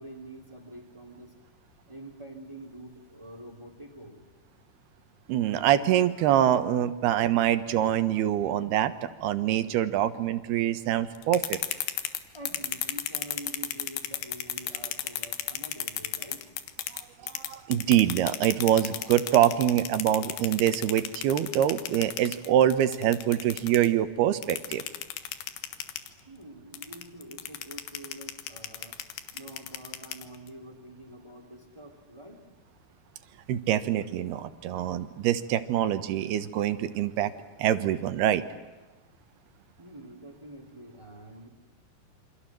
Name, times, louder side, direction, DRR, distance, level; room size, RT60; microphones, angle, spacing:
voice 1, 0.0-1.3 1.9-4.2 8.4-8.5 10.7-10.9 12.3-16.5 26.3-29.0 29.3-32.4 39.8-41.5, right 1 dB, 10° right, 6 dB, 3.2 m, -46 dB
voice 2, 5.3-11.6 17.2-24.8 33.5-37.3 37.6-38.4, right 11 dB, 85° right, 12 dB, 3.3 m, -25 dB
sound 1, 11.2-17.0 17.3-23.9 24.4-26.1 26.7-30.5, left 10 dB, 90° left, 3.5 m, -34 dB
28.0 x 26.0 x 7.7 m, 1.2 s
omnidirectional pair, 4.4 m